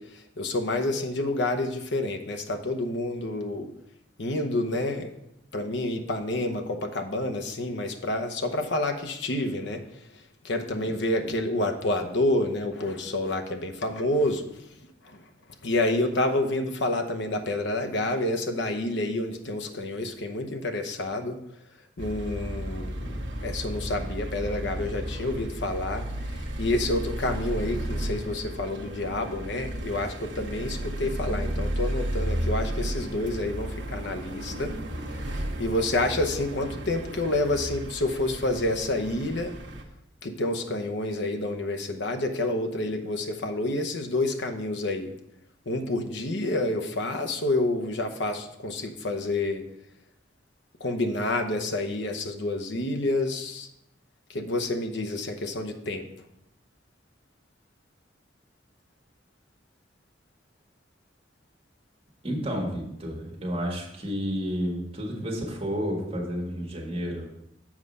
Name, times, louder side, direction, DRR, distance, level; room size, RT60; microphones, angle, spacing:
voice 1, 0.0-3.7 4.2-5.1 5.5-9.8 10.1-14.7 15.0-15.2 15.6-21.4 22.0-26.1 26.3-34.7 35.1-39.6 40.2-45.1 45.7-49.6 50.8-53.7 54.3-56.1, left 2 dB, 70° left, 4 dB, 0.9 m, -29 dB
sound 1, 22.0-39.8, right 1 dB, 75° right, 1.1 m, -33 dB
voice 2, 62.2-67.3, equal, 30° right, -2 dB, 1.7 m, -31 dB
7.4 x 4.9 x 5.4 m, 0.82 s
head